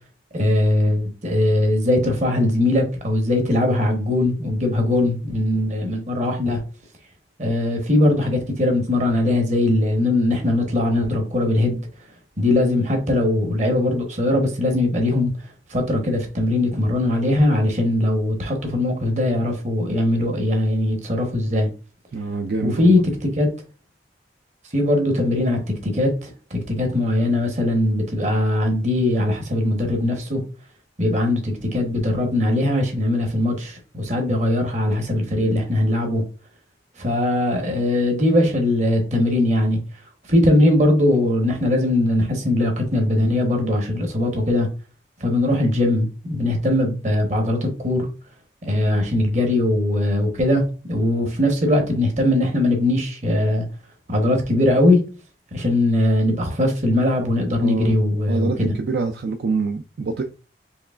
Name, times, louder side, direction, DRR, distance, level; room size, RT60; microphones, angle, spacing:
voice 1, 0.3-6.6 7.4-11.8 12.4-15.3 15.7-21.7 22.6-23.0 23.4-23.5 24.7-26.3 26.7-30.4 31.0-36.2 37.0-39.8 40.3-44.7 45.2-48.1 48.6-50.6 50.9-53.6 54.1-55.0 55.5-58.5, left 1 dB, 40° right, 1.0 m, -20 dB
voice 2, 22.1-23.0 57.6-58.0 58.3-60.2, right 4 dB, 60° right, 0.4 m, -25 dB
4.6 x 3.0 x 2.4 m
head